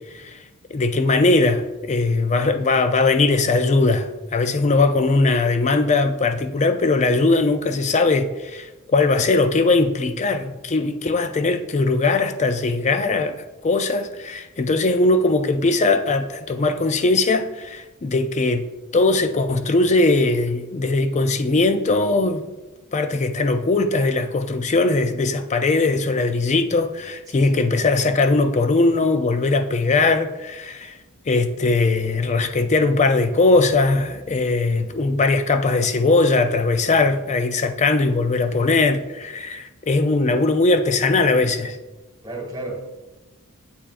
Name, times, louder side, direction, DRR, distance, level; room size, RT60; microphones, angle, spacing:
voice 1, 0.1-0.4 0.7-18.6 18.9-22.5 22.9-31.0 31.3-41.8, left 3 dB, 30° left, 0.4 m, -20 dB
voice 2, 27.3-27.6 42.2-43.0, right 2 dB, 15° right, 1.7 m, -33 dB
8.6 x 7.0 x 2.5 m
head